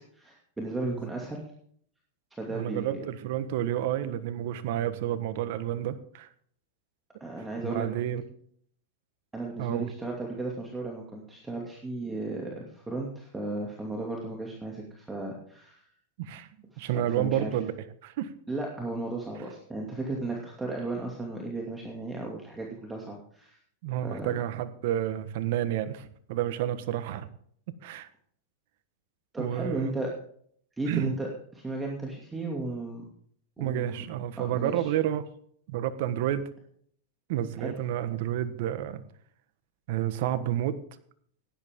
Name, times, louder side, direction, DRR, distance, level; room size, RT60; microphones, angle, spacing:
voice 1, 0.0-1.4 2.4-3.0 7.2-7.9 9.3-15.8 16.7-16.9 17.2-17.5 18.5-23.6 24.0-24.3 29.3-30.1 30.8-33.0 33.6-34.0 34.4-34.9 37.6-37.8, right 2 dB, 10° right, -1 dB, 2.6 m, -35 dB
voice 2, 2.5-6.3 7.6-8.2 9.6-9.9 16.2-16.5 16.8-17.7 18.0-18.3 23.8-27.3 27.8-28.1 29.4-30.0 30.9-31.1 33.6-35.3 35.7-36.5 37.3-39.0 39.9-40.8, right 11 dB, 60° right, 12 dB, 1.4 m, -30 dB
16.5 x 11.0 x 3.8 m, 0.62 s
hypercardioid pair, 125°, 0 cm